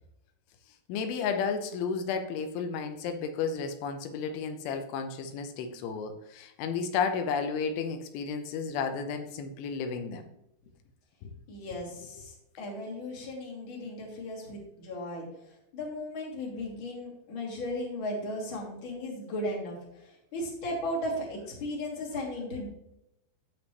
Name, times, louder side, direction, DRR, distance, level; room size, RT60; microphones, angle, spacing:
voice 1, 0.9-10.2, left 5 dB, 90° left, 6 dB, 3.3 m, -32 dB
voice 2, 11.5-15.3 15.7-22.7, left 1 dB, 30° left, -2 dB, 2.8 m, -36 dB
15.5 x 5.3 x 3.1 m, 0.82 s
omnidirectional pair, 5.4 m